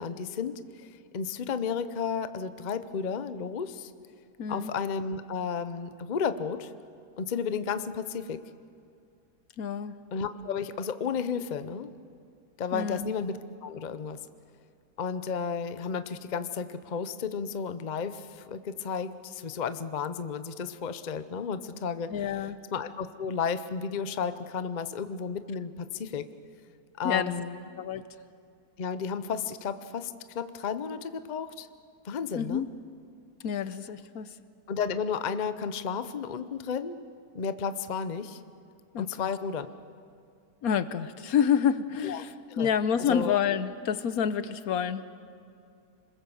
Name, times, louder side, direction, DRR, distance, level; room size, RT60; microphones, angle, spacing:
voice 1, 0.0-3.9 4.5-6.7 7.2-8.4 10.1-11.9 12.6-14.2 15.0-22.1 22.7-26.2 27.0-27.6 28.8-31.7 32.0-32.7 34.7-37.0 37.3-38.4 39.0-39.7 42.0-42.7 43.1-43.4, left 6 dB, 40° left, 11 dB, 0.6 m, -33 dB
voice 2, 4.4-4.7 9.6-10.0 12.7-13.1 22.1-22.6 27.0-27.4 27.8-28.0 32.3-32.7 33.4-34.3 38.9-39.3 40.6-45.0, left 8 dB, 70° left, 13 dB, 1.2 m, -28 dB
26.0 x 21.5 x 7.1 m, 2.4 s
omnidirectional pair, 1.6 m